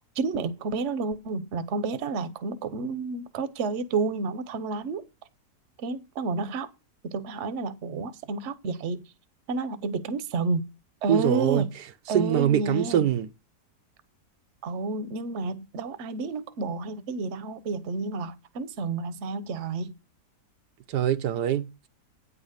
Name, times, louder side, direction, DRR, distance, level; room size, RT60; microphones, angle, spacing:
voice 1, 0.2-5.0 5.8-6.7 7.0-9.0 9.5-10.7 11.0-11.6 12.1-13.1 14.6-19.9, right 3 dB, 50° right, 1.1 m, -30 dB
voice 2, 11.1-11.7 12.1-13.3 20.9-21.9, right 10 dB, 80° right, 1.3 m, -24 dB
9.3 x 5.0 x 6.5 m
omnidirectional pair, 1.8 m